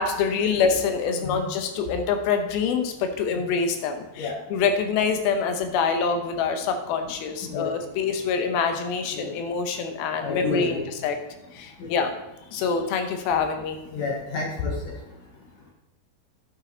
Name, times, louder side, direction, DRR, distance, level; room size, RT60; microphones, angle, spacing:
voice 1, 0.0-11.2 11.5-12.2 12.5-13.8, left 5 dB, 85° left, 6 dB, 2.8 m, -25 dB
voice 2, 10.2-10.8 11.8-11.9 13.9-14.9, left 3 dB, 65° left, 0 dB, 1.9 m, -29 dB
10.0 x 7.6 x 3.9 m, 0.93 s
omnidirectional pair, 4.3 m